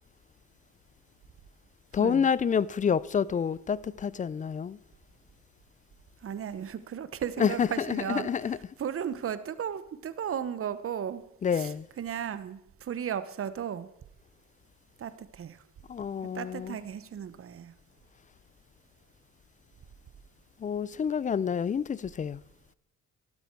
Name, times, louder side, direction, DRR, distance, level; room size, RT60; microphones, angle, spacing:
voice 1, 1.9-4.8 7.4-8.6 11.4-11.9 15.9-16.8 20.6-22.4, left 7 dB, 25° left, 0.3 m, -28 dB
voice 2, 6.2-8.3 8.8-11.2 11.5-13.9 15.0-15.6 16.3-17.7, right 8 dB, 45° right, 0.9 m, -35 dB
13.0 x 12.5 x 4.6 m
cardioid pair, 90°, 30 cm